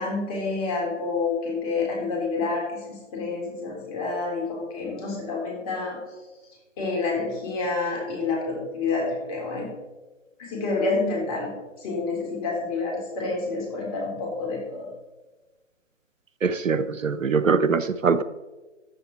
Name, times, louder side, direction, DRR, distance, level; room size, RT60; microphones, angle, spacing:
voice 1, 0.0-6.0 6.8-9.7 10.4-14.9, left 3 dB, 30° left, -1 dB, 3.7 m, -28 dB
voice 2, 16.4-18.2, right 5 dB, 90° right, 14 dB, 0.8 m, -22 dB
13.5 x 7.6 x 4.0 m, 1.2 s
figure-of-eight pair, 145°, 38 cm